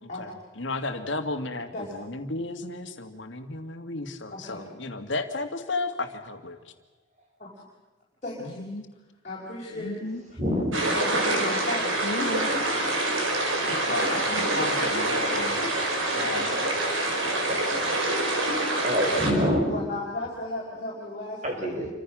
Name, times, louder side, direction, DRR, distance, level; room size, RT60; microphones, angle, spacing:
voice 1, 0.6-6.7 8.4-8.9 9.7-10.2 11.8-12.6 13.6-15.6 16.1-16.5, left 2 dB, 65° left, 7 dB, 2.2 m, -33 dB
voice 2, 4.3-4.6 7.4-7.6 8.2-8.7 9.2-10.0 10.8-11.8 19.7-21.7, left 2 dB, 35° left, -6 dB, 5.1 m, -35 dB
voice 3, 10.4-10.9 17.2-17.9 18.8-19.7 21.4-21.9, equal, 35° right, 1 dB, 6.3 m, -27 dB
sound 1, 10.7-19.3, right 2 dB, 85° right, 5.1 m, -26 dB
29.0 x 25.5 x 6.3 m, 1.2 s
head